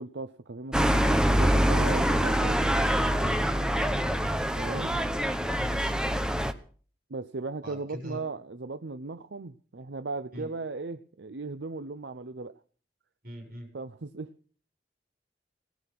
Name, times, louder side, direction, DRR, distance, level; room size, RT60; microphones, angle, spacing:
voice 1, 0.0-2.6 4.6-4.9 7.1-12.5 13.7-14.3, right 3 dB, 80° right, 11 dB, 0.7 m, -37 dB
sound 1, 0.7-6.5, equal, 5° right, 0.9 m, -25 dB
voice 2, 5.6-6.0 7.6-8.2 10.3-10.5 13.2-13.7, equal, 55° right, 2 dB, 7.5 m, -42 dB
18.0 x 11.0 x 6.0 m, 0.43 s
head